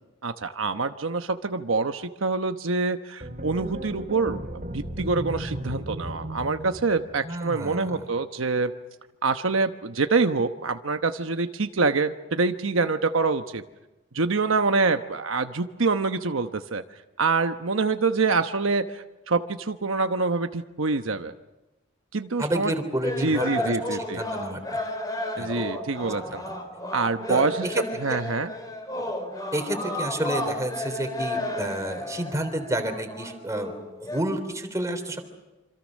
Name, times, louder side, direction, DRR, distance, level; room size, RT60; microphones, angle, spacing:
voice 1, 0.2-4.4 4.7-8.7 9.2-13.6 14.1-16.8 17.2-21.3 22.1-22.7 23.2-24.2 25.4-26.4 26.9-27.7 28.0-28.5 29.0-29.1, right 4 dB, 80° right, 7 dB, 1.0 m, -25 dB
sound 1, 3.2-7.5, right 1 dB, 40° right, 3.0 m, -35 dB
voice 2, 7.2-8.0 22.4-24.8 25.4-25.5 26.1-26.5 27.3-27.8 29.5-33.7 34.0-35.2, right 1 dB, 15° right, 5 dB, 3.5 m, -30 dB
sound 2, 23.0-34.2, left 1 dB, 20° left, 3.7 m, -33 dB
27.0 x 26.0 x 6.4 m, 1.0 s
head